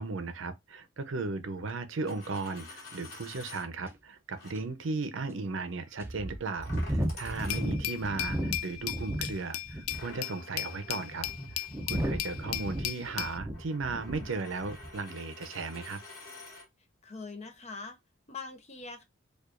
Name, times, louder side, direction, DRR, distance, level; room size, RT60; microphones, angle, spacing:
voice 1, 0.0-11.3 11.5-16.0, right 3 dB, 65° right, 0.6 m, -36 dB
Coin (dropping), 1.9-3.7 4.3-4.5 6.6-8.0 9.9-16.7, left 3 dB, 50° left, 1.3 m, -50 dB
sound 1, 3.9-4.0 4.5-4.6 5.3-5.4 6.0-9.4 9.7-10.2 10.9-14.3 14.6-15.0, equal, 10° right, 0.5 m, -34 dB
Glass, 7.5-13.4, left 14 dB, 90° left, 0.3 m, -36 dB
voice 2, 7.5-7.9 17.0-18.0 18.3-19.0, left 3 dB, 35° left, 0.6 m, -43 dB
4.7 x 2.4 x 2.4 m
head